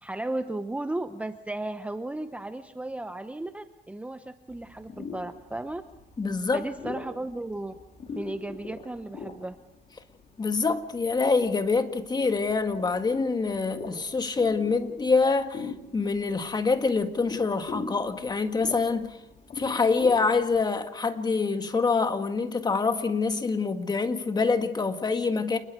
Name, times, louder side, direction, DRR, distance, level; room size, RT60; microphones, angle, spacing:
voice 1, 0.0-5.8 6.5-7.7 8.2-9.6, right 2 dB, 10° right, 0.9 m, -35 dB
sound 1, 4.5-20.6, left 4 dB, 40° left, 4.0 m, -43 dB
voice 2, 6.2-6.7 10.4-19.2 19.5-25.6, left 4 dB, 25° left, 1.8 m, -26 dB
29.0 x 21.0 x 4.7 m
cardioid pair, 110°, 17 cm